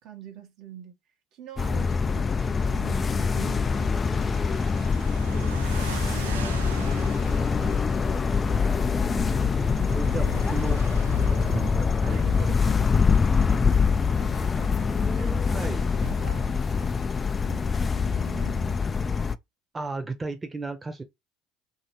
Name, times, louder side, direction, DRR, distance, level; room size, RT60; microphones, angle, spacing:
voice 1, 0.0-1.0 1.3-4.5 9.5-10.3 12.0-15.7 16.1-16.5 17.4-19.1, right 9 dB, 60° right, 1.0 m, -45 dB
sound 1, 1.6-19.4, left 5 dB, 30° left, 0.4 m, -24 dB
sound 2, 2.6-17.0, right 5 dB, 85° right, 0.5 m, -42 dB
voice 2, 5.3-6.6 9.9-12.2 15.5-15.8 19.7-21.0, right 3 dB, 20° right, 0.9 m, -36 dB
3.0 x 2.8 x 4.4 m
hypercardioid pair, 65°, 0 cm